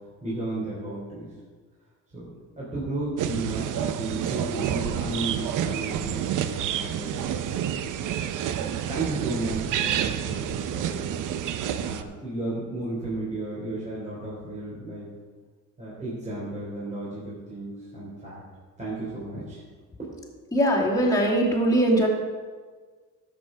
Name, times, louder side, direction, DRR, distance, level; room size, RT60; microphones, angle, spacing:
voice 1, 0.2-1.3 2.1-2.3 2.6-7.7 8.4-11.1 11.8-15.1 15.8-18.4 18.8-19.6 20.0-20.1, right 2 dB, 25° right, -8 dB, 3.5 m, -34 dB
sound 1, 3.2-12.0, right 10 dB, 75° right, 0.7 m, -29 dB
voice 2, 20.5-22.1, right 1 dB, 10° left, -4 dB, 2.4 m, -21 dB
12.0 x 7.8 x 5.0 m, 1.5 s
cardioid pair, 135°, 31 cm